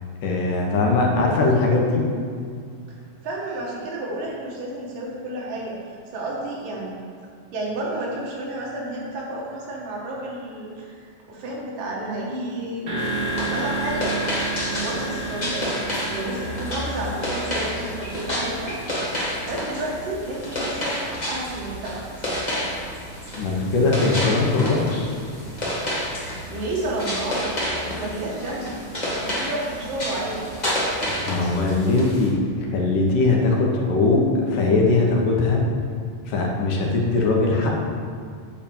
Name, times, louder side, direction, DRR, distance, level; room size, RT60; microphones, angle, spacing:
voice 1, 0.2-2.0 23.4-25.1 31.3-34.2 34.5-35.6 36.3-37.7, left 3 dB, 75° left, -1 dB, 2.8 m, -20 dB
voice 2, 3.2-6.9 7.5-14.1 14.7-18.8 19.4-22.0 26.5-28.8 29.1-30.5, right 1 dB, 85° right, -4 dB, 3.4 m, -31 dB
sound 1, 12.9-20.6, right 2 dB, 45° right, 2.1 m, -32 dB
sound 2, 13.0-32.3, equal, 40° left, 0.5 m, -30 dB
9.0 x 4.8 x 7.2 m, 2.2 s
omnidirectional pair, 3.8 m